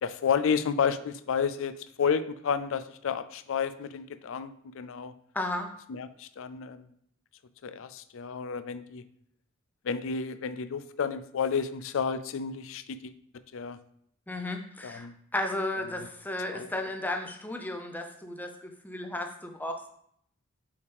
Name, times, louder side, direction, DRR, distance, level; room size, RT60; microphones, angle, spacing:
voice 1, 0.0-5.1 5.9-6.9 7.6-9.1 9.8-13.1 13.5-13.8 14.8-15.1 16.0-16.1 16.4-16.7, left 6 dB, 65° left, 12 dB, 0.4 m, -31 dB
voice 2, 5.3-5.7 14.3-15.1 15.3-19.9, left 1 dB, 10° left, 4 dB, 0.6 m, -34 dB
7.0 x 4.9 x 3.4 m, 0.70 s
head